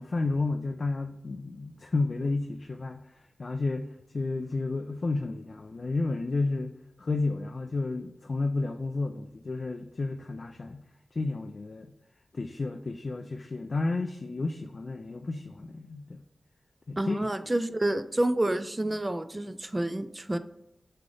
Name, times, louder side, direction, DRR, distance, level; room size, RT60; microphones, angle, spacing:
voice 1, 0.0-3.1 3.4-10.8 11.1-11.9 12.3-16.2 16.9-17.2, left 3 dB, 60° left, 5 dB, 0.3 m, -31 dB
voice 2, 17.0-20.4, right 1 dB, 25° right, 10 dB, 0.3 m, -29 dB
3.7 x 3.3 x 3.7 m, 0.81 s
cardioid pair, 40°, 0 cm